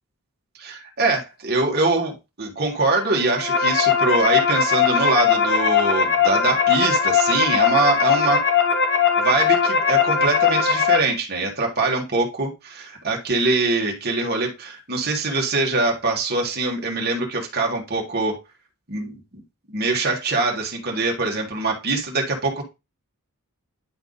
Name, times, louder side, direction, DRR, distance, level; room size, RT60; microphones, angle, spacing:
voice 1, 0.6-8.4 9.2-18.4 18.9-19.2 19.7-22.6, right 3 dB, 45° right, 0 dB, 1.9 m, -23 dB
sound 1, 3.1-11.0, left 6 dB, 55° left, 1.5 m, -19 dB
10.5 x 3.6 x 4.0 m, 0.25 s
head